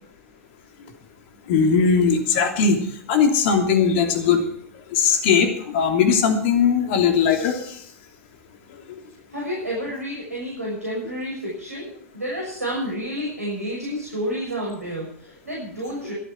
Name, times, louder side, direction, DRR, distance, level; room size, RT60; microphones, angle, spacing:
voice 1, 1.5-2.8 3.1-4.4 4.9-7.6, left 6 dB, 50° left, 4 dB, 3.0 m, -19 dB
voice 2, 9.3-16.1, equal, 85° right, -3 dB, 6.6 m, -30 dB
24.0 x 9.4 x 4.6 m, 0.64 s
figure-of-eight pair, 95°, 8 cm